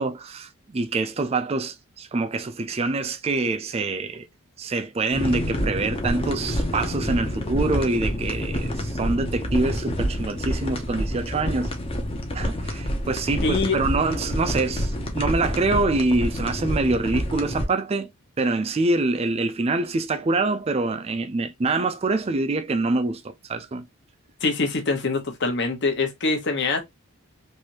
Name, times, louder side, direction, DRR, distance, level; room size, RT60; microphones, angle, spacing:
voice 1, 0.0-4.3 4.6-11.7 12.3-18.1 18.4-23.8, right 3 dB, 25° right, 0.4 m, -25 dB
sound 1, 5.1-17.7, equal, 25° left, 0.6 m, -28 dB
voice 2, 13.4-13.8 24.4-26.8, left 3 dB, 55° left, 0.9 m, -24 dB
3.3 x 2.7 x 2.8 m
head